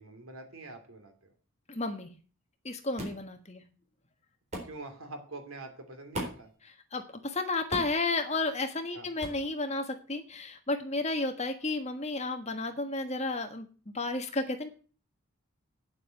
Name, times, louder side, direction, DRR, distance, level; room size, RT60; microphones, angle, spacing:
voice 1, 0.0-1.3 4.6-6.5 8.9-9.1, right 2 dB, 75° right, 5 dB, 3.0 m, -45 dB
voice 2, 1.7-2.1 2.6-3.6 6.9-13.7 13.9-14.7, left 3 dB, 30° left, 7 dB, 1.5 m, -32 dB
sound 1, 3.0-3.2 4.5-4.7 6.1-6.5 7.7-8.0 9.2-9.4, right 1 dB, 30° right, 4.0 m, -37 dB
9.5 x 7.9 x 7.8 m, 0.39 s
head